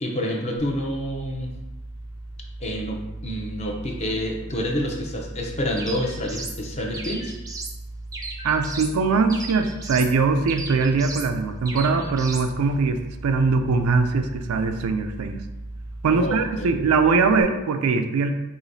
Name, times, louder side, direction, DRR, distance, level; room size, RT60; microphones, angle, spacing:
voice 1, 0.0-1.5 2.6-7.3 16.1-16.7, equal, 30° left, 0 dB, 0.6 m, -28 dB
sound 1, 0.6-17.4, right 1 dB, 85° left, 0.7 m, -38 dB
sound 2, 5.8-6.6 6.9-7.8 8.1-9.0 9.3-10.1 10.5-11.3 11.7-12.5, right 3 dB, 15° right, 0.4 m, -36 dB
voice 2, 8.4-15.4 16.0-18.3, right 4 dB, 85° right, 6 dB, 0.4 m, -21 dB
4.9 x 2.7 x 2.7 m, 1.0 s
head